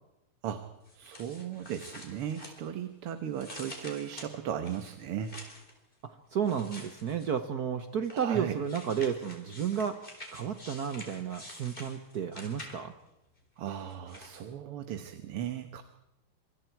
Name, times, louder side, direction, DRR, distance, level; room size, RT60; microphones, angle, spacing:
sound 1, 0.8-3.0 3.3-5.7 6.4-7.5 8.0-13.0 13.7-14.4, left 1 dB, 20° left, 4.3 m, -48 dB
voice 1, 0.9-5.4 8.1-8.6 13.6-15.8, right 9 dB, 85° right, 9 dB, 2.1 m, -36 dB
voice 2, 6.0-10.0 10.3-12.9, right 7 dB, 55° right, 9 dB, 1.3 m, -32 dB
26.0 x 25.0 x 4.6 m, 0.90 s
omnidirectional pair, 2.4 m